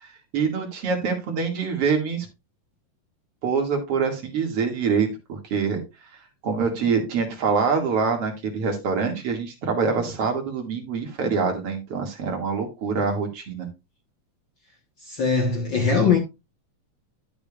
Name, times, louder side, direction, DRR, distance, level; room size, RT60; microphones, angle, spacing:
voice 1, 0.0-2.3 3.4-5.8 6.4-13.7, right 5 dB, 50° right, 2.9 m, -25 dB
voice 2, 15.0-16.2, left 5 dB, 60° left, 1.2 m, -21 dB
12.0 x 6.9 x 2.4 m
omnidirectional pair, 3.7 m